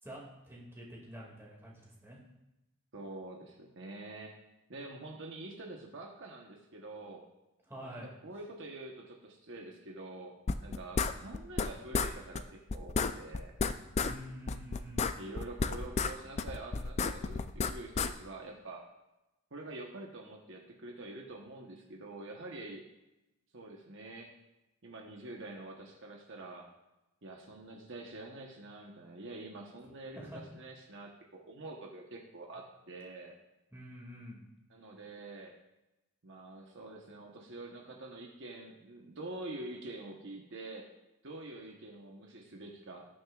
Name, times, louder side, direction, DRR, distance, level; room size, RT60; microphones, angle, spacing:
voice 1, 0.0-2.2 7.7-8.1 14.0-15.2 29.8-30.4 33.7-34.5, equal, 10° right, -3 dB, 2.1 m, -47 dB
voice 2, 2.9-4.3 4.7-7.2 7.8-10.3 10.6-13.5 15.2-18.8 19.5-22.9 23.5-24.3 24.8-26.7 27.2-30.2 30.5-33.3 34.7-35.5 36.2-40.9 41.2-43.1, right 2 dB, 55° right, 0 dB, 1.0 m, -46 dB
sound 1, 10.5-11.7 11.9-12.1 12.4-12.5 12.7-14.1 14.5-16.1 16.4-18.1, left 4 dB, 30° left, 0.3 m, -31 dB
19.0 x 6.4 x 2.4 m, 0.97 s
head